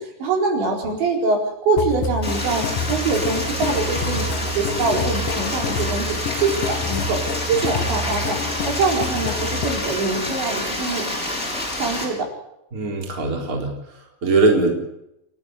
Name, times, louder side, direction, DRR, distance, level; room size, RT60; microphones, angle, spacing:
voice 1, 0.0-7.2 7.5-8.4 8.6-11.0 11.8-12.3, right 3 dB, 65° right, 1 dB, 6.5 m, -24 dB
sound 1, 1.8-9.8, left 3 dB, 90° left, 1.9 m, -28 dB
Stream, 2.2-12.0, left 1 dB, 15° left, 6.4 m, -28 dB
voice 2, 12.7-14.7, right 3 dB, 20° right, 1 dB, 3.7 m, -21 dB
30.0 x 12.0 x 8.1 m, 0.84 s
omnidirectional pair, 5.7 m